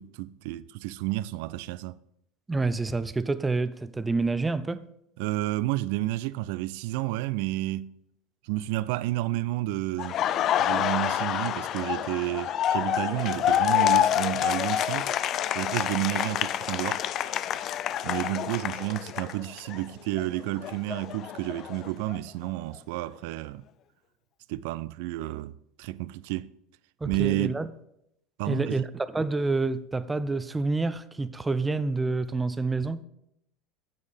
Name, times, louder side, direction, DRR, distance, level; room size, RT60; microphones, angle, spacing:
voice 1, 0.0-2.0 5.2-8.0 8.4-10.2 10.6-15.1 15.5-17.0 18.0-23.6 24.5-26.5 27.1-27.6 28.4-28.8, right 17 dB, 65° right, 0.3 m, -31 dB
voice 2, 2.5-4.9 27.0-27.7 28.5-33.0, right 3 dB, 15° right, 0.5 m, -28 dB
Laughter, 10.0-19.8 20.1-22.2, left 11 dB, 45° left, 0.4 m, -27 dB
9.2 x 8.1 x 3.4 m
hypercardioid pair, 85°, 0 cm